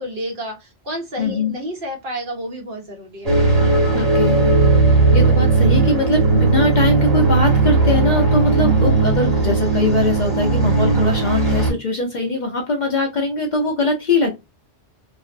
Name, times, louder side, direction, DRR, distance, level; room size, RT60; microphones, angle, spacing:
voice 1, 0.0-3.3, equal, 55° right, 1 dB, 0.9 m, -30 dB
voice 2, 1.2-1.5 3.9-14.3, left 2 dB, 55° left, 2 dB, 0.6 m, -22 dB
sound 1, 3.3-11.7, right 3 dB, 35° right, 1.1 m, -16 dB
2.5 x 2.0 x 2.5 m, 0.24 s
omnidirectional pair, 1.2 m